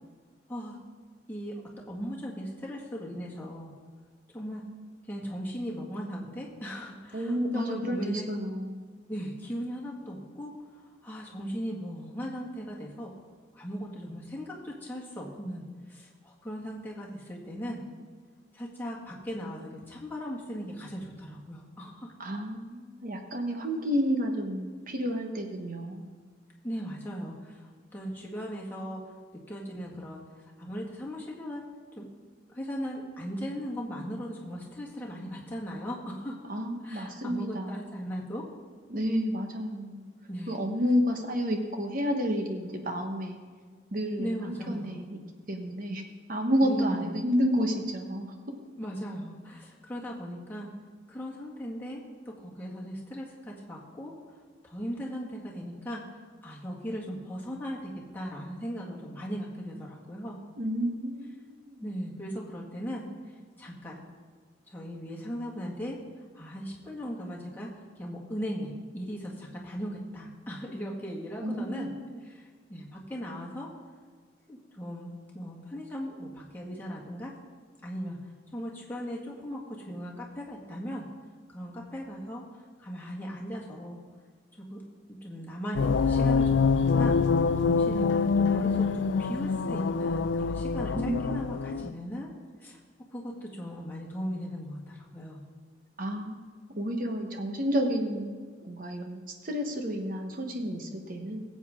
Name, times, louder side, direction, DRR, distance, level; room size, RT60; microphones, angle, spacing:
voice 1, 1.3-1.6 1.9-3.7 4.3-4.6 5.1-8.3 9.1-10.5 11.0-13.1 13.5-15.6 15.9-17.8 18.5-22.1 26.6-29.0 29.5-31.6 32.0-32.1 32.5-36.4 36.8-38.4 40.3-40.6 44.2-45.0 46.6-47.2 48.8-50.7 51.1-54.1 54.6-60.4 61.8-64.0 64.7-66.0 66.3-67.7 68.0-71.9 72.2-73.7 74.5-77.3 77.8-81.0 81.5-84.0 84.6-84.8 85.2-87.2 87.6-88.1 88.4-92.3 92.6-92.8 93.1-95.4, equal, 10° left, -4 dB, 1.9 m, -38 dB
voice 2, 7.1-8.8 22.2-26.1 36.5-37.8 38.9-40.1 40.5-43.4 43.9-45.2 45.5-48.3 60.6-61.9 71.4-72.2 91.0-91.9 96.0-101.4, equal, 50° right, 4 dB, 1.3 m, -31 dB
sound 1, 85.8-91.9, left 5 dB, 75° left, 0.4 m, -25 dB
19.0 x 8.0 x 3.7 m, 1.5 s
head